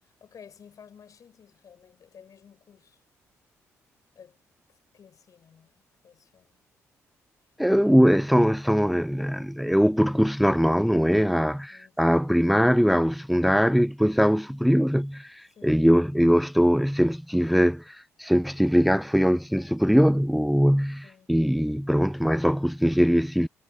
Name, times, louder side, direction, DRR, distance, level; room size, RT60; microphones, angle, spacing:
voice 1, 0.0-3.0 4.1-4.4 4.9-6.6 11.1-12.2 15.5-15.9 21.0-21.4, left 7 dB, 50° left, 7.9 m, -53 dB
voice 2, 7.6-23.5, equal, ahead, 0.7 m, -21 dB
figure-of-eight pair, 40°, 8 cm